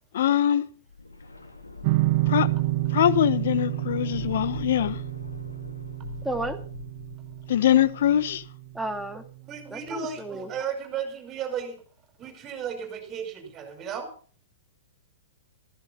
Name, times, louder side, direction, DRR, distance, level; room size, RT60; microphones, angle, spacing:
voice 1, 0.1-0.7 2.3-2.5 2.9-5.0 7.5-8.4, left 10 dB, 60° left, 1.4 m, -22 dB
sound 1, 0.9-8.7 8.9-9.0, left 3 dB, 85° left, 3.7 m, -42 dB
sound 2, 1.8-9.0, right 21 dB, 45° right, 0.8 m, -29 dB
voice 2, 6.2-6.6 8.7-9.2 9.7-10.5, right 1 dB, 5° right, 2.5 m, -32 dB
voice 3, 9.5-11.8 12.2-14.1, right 7 dB, 25° right, 5.9 m, -34 dB
15.0 x 14.5 x 5.5 m
figure-of-eight pair, 110°, 0 cm